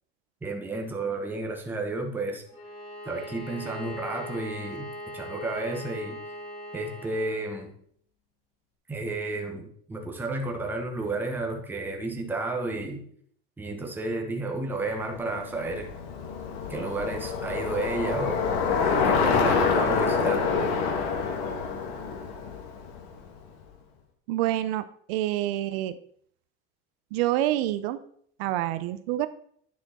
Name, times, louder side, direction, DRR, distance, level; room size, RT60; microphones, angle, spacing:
voice 1, 0.4-2.4 3.0-6.2 6.7-7.7 8.9-13.0 13.6-15.9 16.7-18.5 18.9-20.4, right 2 dB, 5° right, 2 dB, 0.9 m, -32 dB
Bowed string instrument, 2.5-7.4, left 1 dB, 45° left, 1.9 m, -40 dB
Bicycle, 15.0-23.4, left 5 dB, 85° left, 1.5 m, -27 dB
voice 2, 24.3-25.9 27.1-28.0 28.4-29.3, right 14 dB, 75° right, 12 dB, 0.6 m, -27 dB
10.5 x 4.5 x 4.2 m, 0.62 s
cardioid pair, 180°, 30 cm